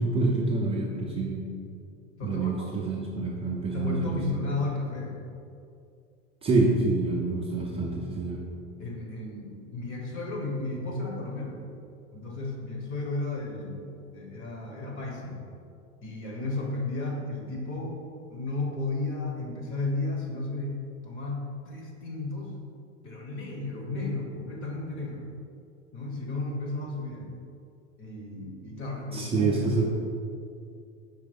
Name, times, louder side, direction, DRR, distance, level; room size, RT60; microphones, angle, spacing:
voice 1, 0.0-1.5 2.2-4.2 6.4-8.4 29.1-29.8, right 3 dB, 20° right, -3 dB, 0.4 m, -27 dB
voice 2, 2.1-2.7 3.7-5.2 8.8-11.6 12.1-15.4 16.0-18.0 18.3-20.7 21.0-22.5 23.0-25.3 25.9-27.3 28.0-29.5, left 2 dB, 40° left, 0 dB, 1.2 m, -33 dB
5.1 x 3.6 x 5.2 m, 2.5 s
supercardioid pair, 130°, 33 cm